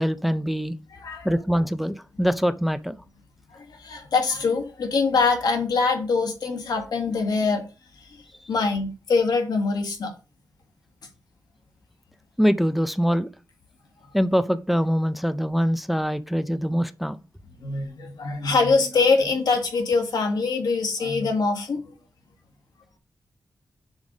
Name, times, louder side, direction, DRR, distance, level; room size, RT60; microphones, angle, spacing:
voice 1, 0.0-0.8 1.2-3.0 12.4-13.3 14.1-17.2, equal, ahead, 0.4 m, -23 dB
voice 2, 0.9-1.3 3.5-7.6 8.0-8.2 8.5-10.1 17.6-21.9, left 4 dB, 80° left, 1.6 m, -24 dB
7.1 x 3.9 x 4.9 m
wide cardioid pair, 95°, 7 cm